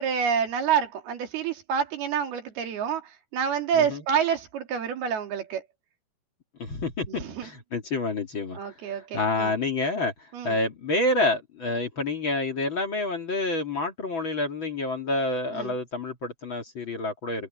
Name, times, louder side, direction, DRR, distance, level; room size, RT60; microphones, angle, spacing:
voice 1, 0.0-5.6 7.1-7.5 8.5-9.5 10.3-10.6 15.5-15.7, right 7 dB, 85° right, 4.6 m, -28 dB
voice 2, 3.7-4.0 6.6-8.6 8.9-10.1 10.4-17.5, left 2 dB, 35° left, 2.5 m, -28 dB
omnidirectional pair, 4.3 m